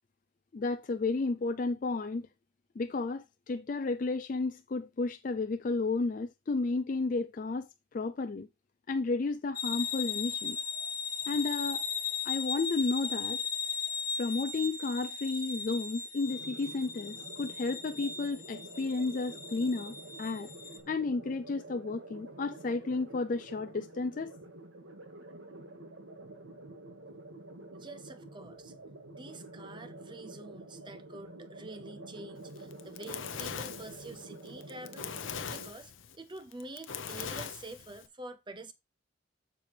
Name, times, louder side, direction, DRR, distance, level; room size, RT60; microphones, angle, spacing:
voice 1, 0.5-2.3 2.8-7.7 7.9-8.5 8.9-10.6 11.3-11.8 12.2-13.4 14.2-20.5 20.9-24.3, left 3 dB, 40° left, 0.4 m, -32 dB
sound 1, 9.6-20.8, left 5 dB, 15° left, 0.8 m, -37 dB
sound 2, 16.2-35.7, right 2 dB, 75° right, 2.0 m, -49 dB
voice 2, 27.7-28.7 29.1-35.1 35.5-38.7, right 2 dB, 25° right, 0.6 m, -47 dB
Fire, 32.6-38.1, left 7 dB, 75° left, 0.7 m, -41 dB
7.3 x 6.8 x 3.3 m
head